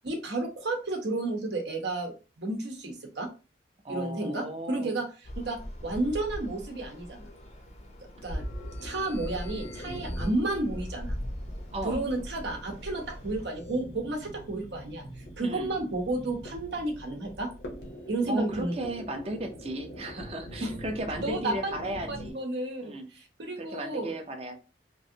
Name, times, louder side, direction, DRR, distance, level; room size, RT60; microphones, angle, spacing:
voice 1, 0.0-3.3 3.9-5.1 5.4-7.3 8.2-8.4 8.8-11.1 11.8-15.0 15.4-17.5 18.1-18.7 20.6-20.7 21.2-24.1, right 2 dB, 80° right, 3 dB, 0.8 m, -32 dB
voice 2, 3.8-4.9 11.7-12.0 15.4-15.7 18.3-22.4 22.8-23.1 23.6-24.6, right 1 dB, 35° right, 6 dB, 0.5 m, -35 dB
sound 1, 5.2-13.5, equal, 40° left, 0.6 m, -40 dB
sound 2, 8.2-22.3, equal, 85° left, 1.0 m, -43 dB
3.0 x 2.5 x 2.7 m, 0.32 s
head